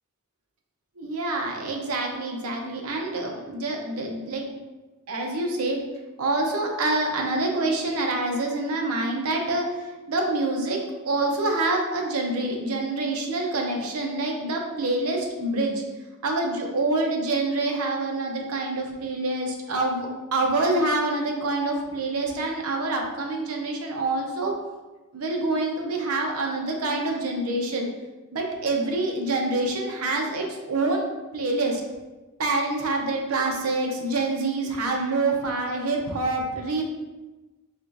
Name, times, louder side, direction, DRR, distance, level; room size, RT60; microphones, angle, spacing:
voice 1, 1.0-4.5 5.1-5.8 6.2-15.8 16.2-24.6 25.1-27.9 28.3-31.0 31.3-31.8 32.4-36.8, right 2 dB, 85° right, 1 dB, 0.6 m, -26 dB
4.2 x 2.9 x 2.5 m, 1.2 s
head